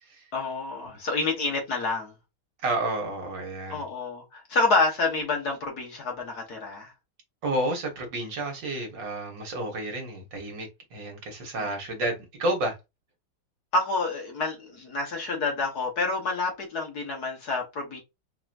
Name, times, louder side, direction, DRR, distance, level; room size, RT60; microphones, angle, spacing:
voice 1, 0.3-2.1 3.7-6.9 11.6-11.7 13.7-18.0, left 3 dB, 50° left, 1.7 m, -28 dB
voice 2, 2.6-3.9 7.4-12.8, right 2 dB, 60° right, 2.0 m, -30 dB
4.5 x 3.0 x 2.5 m
omnidirectional pair, 2.3 m